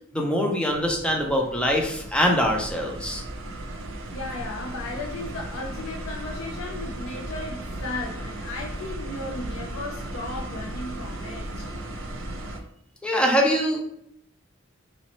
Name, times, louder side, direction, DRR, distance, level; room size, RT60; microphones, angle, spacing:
voice 1, 0.1-3.2 13.0-13.8, equal, 5° left, 0 dB, 0.5 m, -23 dB
sound 1, 0.7-12.6, right 1 dB, 70° right, 0.5 m, -36 dB
voice 2, 4.1-11.7, left 2 dB, 75° left, -1 dB, 0.5 m, -35 dB
3.0 x 2.9 x 2.9 m, 0.72 s
head